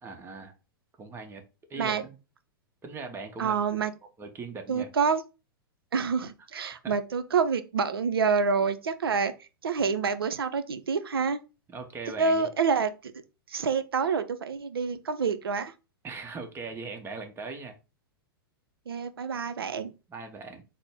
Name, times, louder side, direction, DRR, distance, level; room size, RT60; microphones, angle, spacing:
voice 1, 0.0-0.5 1.0-1.4 1.7-2.2 2.8-3.6 4.2-4.9 6.8-6.9 11.7-12.5 16.0-17.8 20.1-20.6, right 4 dB, 20° right, 0.8 m, -39 dB
voice 2, 3.4-3.9 4.7-5.2 5.9-9.3 9.6-11.4 12.2-13.1 13.5-15.7 18.9-19.9, right 5 dB, 80° right, 0.5 m, -27 dB
4.0 x 2.0 x 3.5 m
hypercardioid pair, 105°, 12 cm